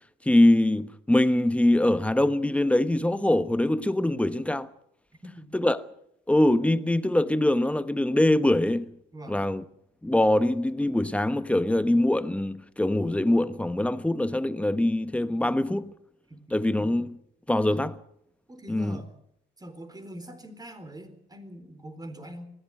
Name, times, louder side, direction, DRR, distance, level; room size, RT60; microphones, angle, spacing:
voice 1, 0.2-4.7 5.5-5.8 6.3-9.0 9.3-9.6 10.0-15.9 16.5-17.2 17.5-18.0 18.7-19.0, left 1 dB, 5° left, 1.2 m, -23 dB
voice 2, 5.2-5.6 9.1-9.4 15.4-15.6 16.3-16.6 17.5-17.9 18.5-19.1 19.6-22.5, right 1 dB, 20° right, 4.1 m, -44 dB
21.0 x 15.5 x 9.3 m
cardioid pair, 90°, 20 cm